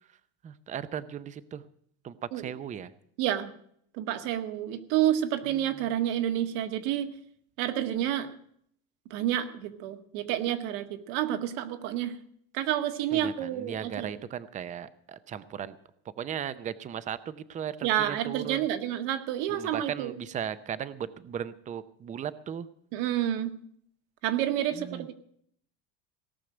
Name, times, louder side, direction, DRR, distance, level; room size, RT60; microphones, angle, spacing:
voice 1, 0.4-1.6 2.0-2.9 5.5-5.7 13.1-15.8 16.2-18.7 19.5-22.7 24.7-25.1, right 9 dB, 20° right, 15 dB, 0.6 m, -37 dB
voice 2, 3.2-3.5 3.9-7.1 7.6-8.3 9.1-12.1 12.5-14.1 17.8-20.1 22.9-23.5 24.2-25.1, right 11 dB, 75° right, 7 dB, 1.8 m, -29 dB
17.5 x 6.5 x 8.9 m, 0.66 s
cardioid pair, 155°, 36 cm